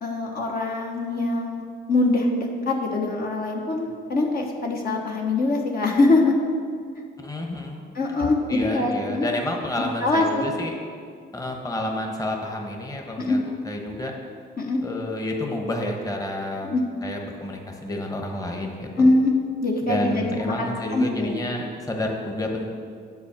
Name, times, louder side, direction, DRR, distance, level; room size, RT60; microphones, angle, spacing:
voice 1, 0.0-6.3 7.9-9.4 9.8-10.4 13.2-13.4 14.6-14.8 16.6-16.8 19.0-19.3 19.6-20.7 20.9-21.3, left 2 dB, 50° left, 0 dB, 1.1 m, -23 dB
voice 2, 7.2-7.8 8.5-10.8 11.3-14.1 14.8-16.7 17.0-19.1 19.8-22.7, left 1 dB, 15° left, 1 dB, 1.2 m, -30 dB
8.4 x 4.4 x 7.2 m, 2.2 s
cardioid pair, 90°, 20 cm